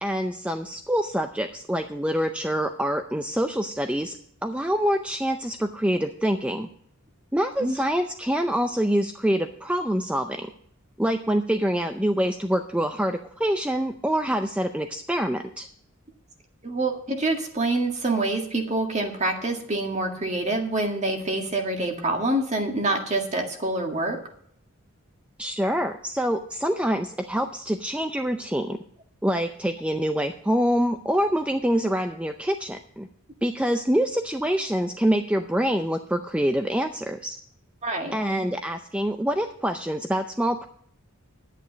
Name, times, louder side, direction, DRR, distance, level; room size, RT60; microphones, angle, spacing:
voice 1, 0.0-6.7 7.3-10.5 11.0-15.7 25.4-28.8 29.2-33.1 33.4-37.4 38.1-40.7, equal, 5° right, 6 dB, 0.5 m, -25 dB
voice 2, 16.6-24.2 37.8-38.1, right 2 dB, 30° right, 3 dB, 1.9 m, -26 dB
11.0 x 9.2 x 5.1 m, 0.66 s
head